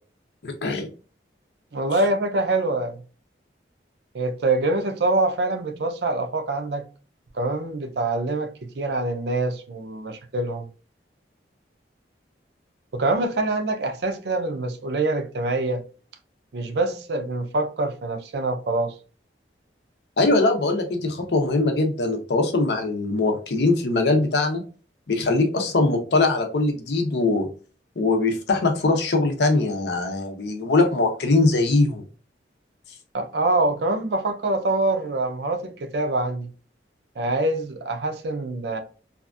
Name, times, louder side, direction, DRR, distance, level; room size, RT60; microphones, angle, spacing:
voice 1, 0.4-0.9 20.2-24.6 25.1-27.5 28.0-32.0, left 2 dB, 75° left, 0.6 m, -21 dB
voice 2, 1.7-3.0 4.1-6.9 7.3-10.7 12.9-15.8 16.5-18.9 33.1-36.5 37.2-38.8, right 2 dB, 70° right, 0.5 m, -25 dB
2.7 x 2.4 x 2.3 m
head